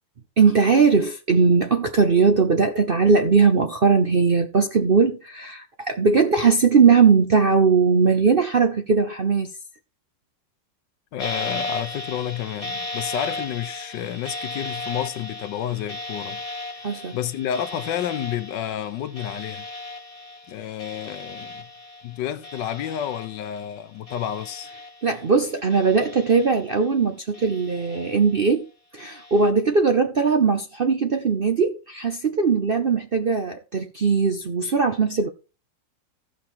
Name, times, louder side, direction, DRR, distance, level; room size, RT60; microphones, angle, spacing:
voice 1, 0.4-9.5 16.8-17.2 25.0-28.6 28.9-35.3, right 5 dB, 50° right, 0.7 m, -19 dB
voice 2, 11.1-16.4 17.1-19.7 20.5-21.7 22.0-24.7, left 10 dB, 80° left, 1.4 m, -30 dB
sound 1, 11.2-23.8 24.1-25.3 25.7-26.9 27.3-28.4 29.0-29.5, left 2 dB, 25° left, 1.0 m, -36 dB
15.0 x 5.7 x 4.4 m
omnidirectional pair, 2.0 m